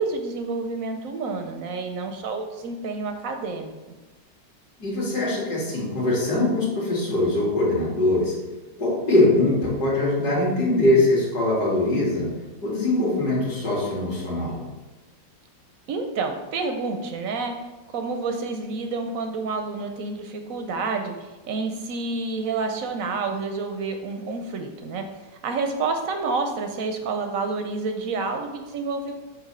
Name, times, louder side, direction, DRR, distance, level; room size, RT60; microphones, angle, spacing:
voice 1, 0.0-3.7 15.9-17.5 17.9-25.0 25.4-29.1, right 4 dB, 65° right, 5 dB, 0.8 m, -29 dB
voice 2, 4.8-8.3 8.8-12.3 12.6-14.6, left 2 dB, 60° left, -5 dB, 2.7 m, -22 dB
7.8 x 2.9 x 5.5 m, 1.2 s
omnidirectional pair, 2.0 m